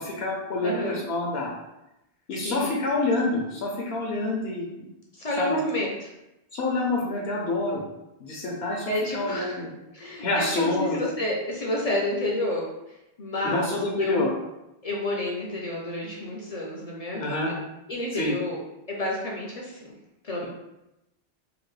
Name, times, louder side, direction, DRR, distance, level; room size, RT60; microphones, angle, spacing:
voice 1, 0.0-1.5 2.3-4.9 5.4-5.6 6.5-7.8 8.2-9.7 10.2-11.0 13.4-14.3 17.2-17.5 18.1-18.4, left 2 dB, 75° left, -2 dB, 0.8 m, -27 dB
voice 2, 0.6-1.0 2.3-2.7 5.1-6.1 8.9-9.6 9.9-14.3 14.8-17.5 17.9-18.6 18.9-19.9 20.2-20.5, left 1 dB, 50° left, -2 dB, 0.5 m, -30 dB
2.9 x 2.5 x 3.1 m, 0.92 s
omnidirectional pair, 1.1 m